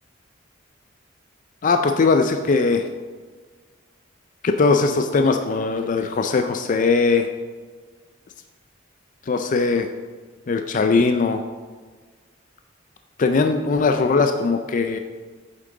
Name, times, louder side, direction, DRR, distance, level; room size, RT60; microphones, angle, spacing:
voice 1, 1.6-2.8 4.4-7.3 9.3-9.9 10.5-11.4 13.2-15.0, left 4 dB, 40° left, 6 dB, 0.4 m, -20 dB
8.2 x 7.5 x 3.9 m, 1.5 s
head